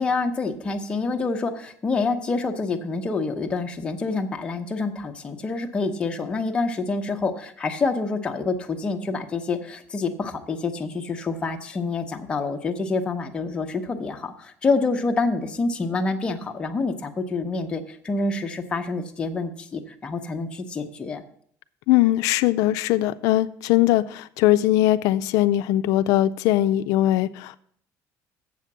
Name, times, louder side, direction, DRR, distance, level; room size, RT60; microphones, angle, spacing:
voice 1, 0.0-21.2, left 3 dB, 15° left, 3 dB, 0.7 m, -27 dB
voice 2, 21.9-27.6, left 14 dB, 80° left, 12 dB, 0.3 m, -20 dB
7.5 x 5.7 x 7.1 m, 0.63 s
cardioid pair, 170°, 6 cm